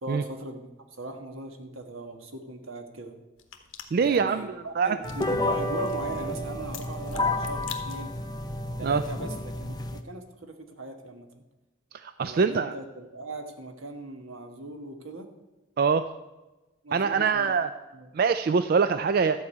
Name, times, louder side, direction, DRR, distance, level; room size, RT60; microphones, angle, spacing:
voice 1, 0.0-3.1 4.0-8.1 8.8-11.3 12.2-15.3 16.8-17.5 17.9-18.1, right 2 dB, 80° right, 5 dB, 1.4 m, -38 dB
sound 1, 3.4-8.4, left 8 dB, 75° left, 1.2 m, -46 dB
voice 2, 3.9-4.5 4.8-5.0 8.8-9.0 12.0-12.7 15.8-16.1 16.9-17.7 18.1-19.4, right 5 dB, 45° right, 11 dB, 0.3 m, -24 dB
sound 2, 5.0-10.0, left 2 dB, 20° left, 0.6 m, -31 dB
13.0 x 4.8 x 8.2 m, 1.1 s
head